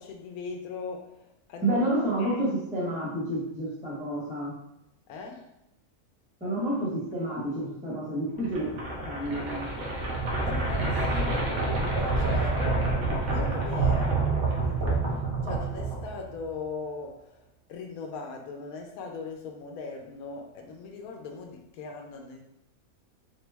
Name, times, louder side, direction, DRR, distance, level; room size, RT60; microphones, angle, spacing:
voice 1, 0.0-1.8 2.2-2.4 5.1-5.5 10.4-12.7 13.3-22.4, left 4 dB, 85° left, 2 dB, 1.0 m, -39 dB
voice 2, 1.6-4.5 6.4-9.7, right 1 dB, 5° right, -7 dB, 0.9 m, -29 dB
sound 1, 8.4-16.4, right 3 dB, 65° right, 1.0 m, -27 dB
3.7 x 2.0 x 3.3 m, 0.82 s
omnidirectional pair, 1.5 m